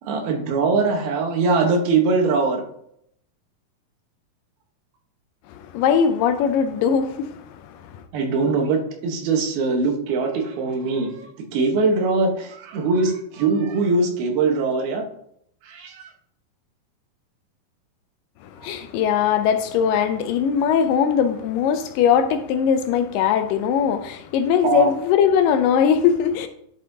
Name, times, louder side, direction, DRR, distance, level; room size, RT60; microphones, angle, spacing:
voice 1, 0.0-2.6 8.1-15.0 15.6-16.1 18.6-18.7 24.6-24.9, right 4 dB, 90° right, 3.1 m, -22 dB
voice 2, 5.7-7.3 18.6-26.5, left 7 dB, 80° left, 2.1 m, -20 dB
10.5 x 6.7 x 2.7 m
omnidirectional pair, 4.2 m